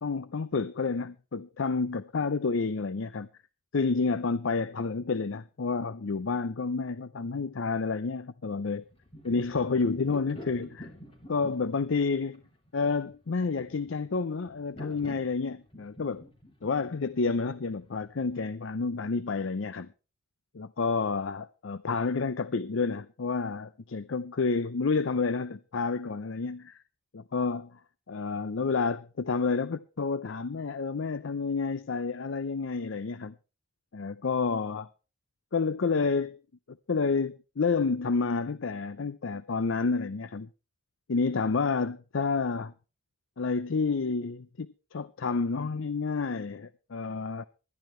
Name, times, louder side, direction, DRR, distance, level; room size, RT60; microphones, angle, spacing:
voice 1, 0.0-3.3 3.7-8.8 9.2-10.9 11.3-12.4 12.7-16.2 16.6-19.9 20.5-26.8 27.1-27.8 28.1-33.3 33.9-34.9 35.5-36.4 36.7-40.5 41.1-42.7 43.4-47.5, left 4 dB, 65° left, 0.6 m, -29 dB
sound 1, 8.8-18.5, left 1 dB, 25° left, 3.3 m, -48 dB
20.0 x 12.0 x 3.2 m
head